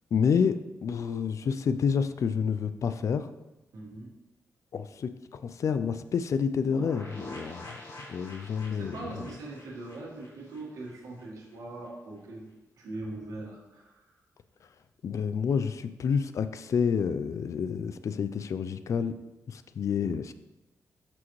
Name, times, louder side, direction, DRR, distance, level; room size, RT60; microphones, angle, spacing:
voice 1, 0.1-3.3 4.7-7.8 8.1-8.9 15.0-19.1 19.5-20.3, left 6 dB, 60° left, 12 dB, 0.4 m, -29 dB
voice 2, 3.7-4.1 8.4-12.5 12.8-14.0, right 2 dB, 75° right, -2 dB, 1.6 m, -41 dB
sound 1, 6.6-11.2 11.5-11.6 11.8-11.9, left 1 dB, 85° left, 1.6 m, -46 dB
6.2 x 6.0 x 3.1 m, 1.0 s
cardioid pair, 80°, 6 cm